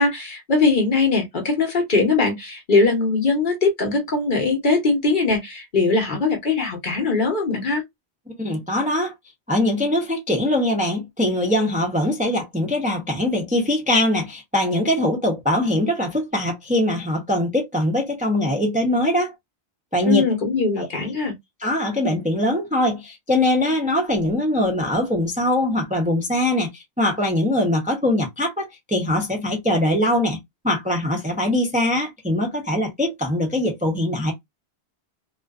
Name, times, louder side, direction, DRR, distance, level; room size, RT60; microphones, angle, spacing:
voice 1, 0.0-7.8 20.0-21.3, left 3 dB, 50° left, 0.9 m, -21 dB
voice 2, 8.4-9.1 9.5-19.3 19.9-20.2 20.8-20.9 21.6-30.4 30.6-34.3, left 1 dB, 10° right, 0.5 m, -22 dB
2.4 x 2.3 x 2.3 m
omnidirectional pair, 1.1 m